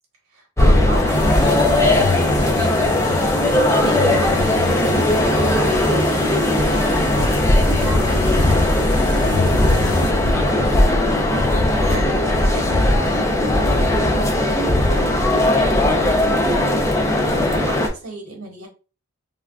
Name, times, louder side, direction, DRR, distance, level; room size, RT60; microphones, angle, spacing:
voice 1, 0.3-1.5 1.7-3.5 3.8-5.0 5.2-7.4 7.7-11.5 11.9-13.2 13.5-16.7 17.1-18.7, right 2 dB, 75° right, 1.2 m, -34 dB
sound 1, 0.6-17.9, left 1 dB, 15° left, 0.3 m, -18 dB
sound 2, 1.1-10.1, left 2 dB, 75° left, 0.8 m, -27 dB
3.3 x 2.3 x 2.3 m
head